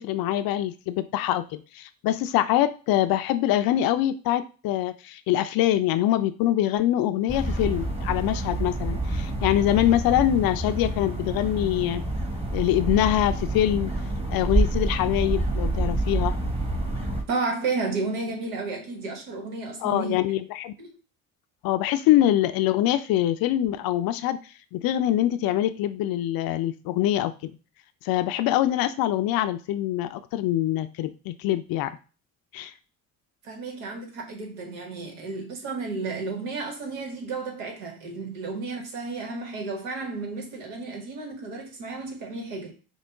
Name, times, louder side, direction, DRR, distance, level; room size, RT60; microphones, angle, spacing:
voice 1, 0.0-12.0 12.5-13.9 14.3-16.3 19.8-20.7 21.6-24.4 24.7-27.5 28.0-31.9 32.5-32.7, left 13 dB, 55° left, 0.5 m, -24 dB
Day in a Park, 7.3-17.2, right 2 dB, 15° right, 1.2 m, -28 dB
voice 2, 17.3-20.1 20.8-20.9 33.4-42.7, right 3 dB, 80° right, 1.2 m, -32 dB
5.4 x 2.1 x 3.4 m
hypercardioid pair, 55°, 42 cm